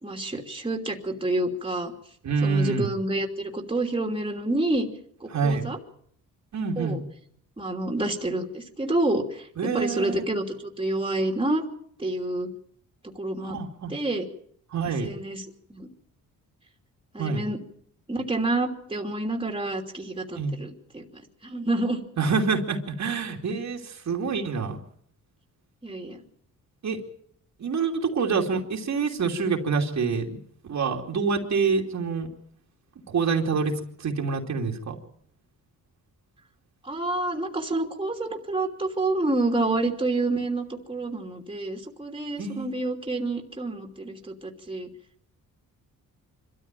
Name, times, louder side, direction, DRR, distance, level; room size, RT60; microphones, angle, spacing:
voice 1, 0.0-1.9 2.4-4.9 5.2-5.8 6.8-7.0 7.6-10.4 10.8-11.6 12.0-12.5 13.1-13.6 13.9-14.3 15.0-15.4 15.7-15.9 17.1-17.6 18.1-22.0 25.8-26.2 36.8-44.9, right 2 dB, 15° right, 3 dB, 2.9 m, -28 dB
voice 2, 2.2-2.9 5.3-5.7 6.5-7.0 9.6-10.3 13.4-13.9 14.7-15.1 17.2-17.4 20.3-20.5 22.2-24.8 26.8-27.0 27.6-32.3 33.1-34.9 42.4-42.7, right 4 dB, 55° right, 1 dB, 2.8 m, -26 dB
25.0 x 13.5 x 9.1 m, 0.67 s
cardioid pair, 100°, 33 cm